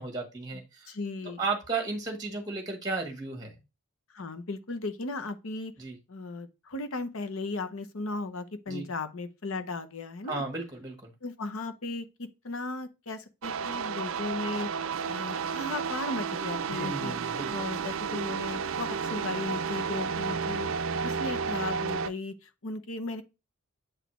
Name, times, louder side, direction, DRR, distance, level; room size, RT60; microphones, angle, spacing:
voice 1, 0.0-0.9 1.4-3.6 5.8-6.0 8.7-8.9 10.3-11.1 16.7-17.5 20.3-20.4, right 3 dB, 15° right, 1.4 m, -34 dB
voice 2, 0.9-1.4 4.1-5.7 6.1-10.4 11.2-14.7 15.1-17.2 17.5-23.2, left 3 dB, 70° left, 0.8 m, -36 dB
sound 1, 13.4-22.1, right 6 dB, 65° right, 0.4 m, -32 dB
8.0 x 4.1 x 3.0 m
head